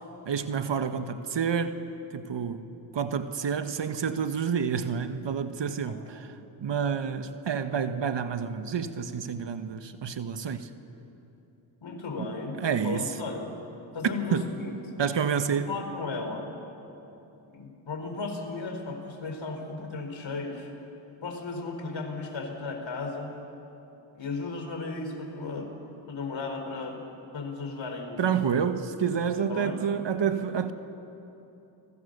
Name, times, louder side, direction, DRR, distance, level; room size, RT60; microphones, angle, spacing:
voice 1, 0.2-1.8 2.1-2.7 2.9-6.3 6.6-10.7 12.2-12.3 12.6-13.1 14.0-14.5 15.0-15.7 28.2-30.7, right 7 dB, 60° right, 1.5 m, -29 dB
voice 2, 11.8-12.6 12.8-13.5 13.9-14.7 15.5-16.5 17.5-20.7 21.2-23.3 24.1-25.8 26.1-27.0 27.3-28.4 29.5-29.8, left 3 dB, 65° left, 4.7 m, -35 dB
30.0 x 22.0 x 6.8 m
supercardioid pair, 45°, 49 cm